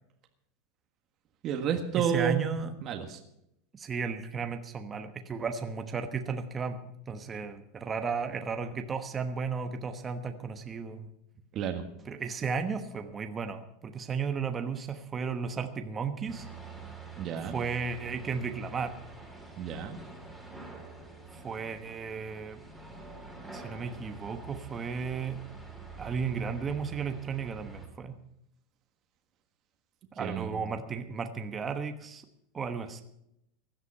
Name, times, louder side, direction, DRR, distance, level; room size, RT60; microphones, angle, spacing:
voice 1, 1.4-3.2 11.5-11.8 17.2-17.6 19.6-20.0 30.2-30.6, right 8 dB, 35° right, 4 dB, 1.6 m, -31 dB
voice 2, 2.0-2.7 3.7-6.8 7.1-11.1 12.1-16.5 17.5-18.9 21.4-22.6 23.5-25.4 26.0-28.2 30.2-32.2 32.5-33.0, right 5 dB, 20° right, 6 dB, 1.1 m, -34 dB
sound 1, 16.3-27.9, right 4 dB, ahead, 3.2 m, -46 dB
16.5 x 11.5 x 5.6 m, 0.79 s
supercardioid pair, 155°, 0 cm